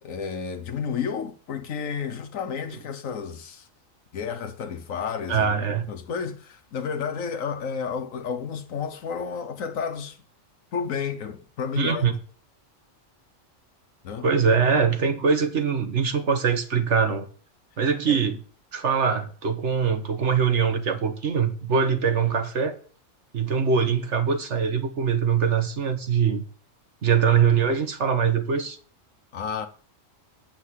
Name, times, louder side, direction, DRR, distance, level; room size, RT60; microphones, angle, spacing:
voice 1, 0.0-3.7 4.1-10.2 10.7-12.1 14.0-14.3 18.1-18.2 29.3-29.7, left 6 dB, 85° left, 1.3 m, -31 dB
voice 2, 5.3-5.9 11.8-12.1 14.2-17.2 17.8-18.4 18.7-22.8 23.3-26.4 27.0-28.8, right 6 dB, 65° right, 1.5 m, -23 dB
7.4 x 7.1 x 8.2 m
omnidirectional pair, 1.3 m